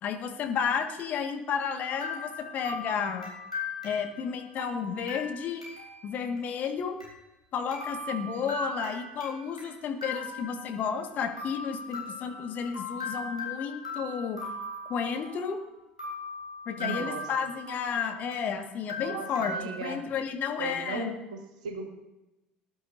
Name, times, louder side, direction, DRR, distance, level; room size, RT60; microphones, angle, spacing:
voice 1, 0.0-3.3 3.8-5.6 6.0-7.0 7.5-14.4 14.9-15.6 16.6-21.2, left 7 dB, 45° left, 4 dB, 1.7 m, -32 dB
sound 1, 1.9-6.1 6.4-6.5 7.0-7.1 7.7-9.7 10.0-11.1 11.4-15.6 16.0-18.5 18.9-19.6, left 2 dB, 85° left, 3.4 m, -39 dB
voice 2, 16.8-17.2 19.0-20.1 20.6-21.9, right 4 dB, 70° right, 5 dB, 1.7 m, -37 dB
19.5 x 11.0 x 2.7 m, 0.96 s
figure-of-eight pair, 60°, 4 cm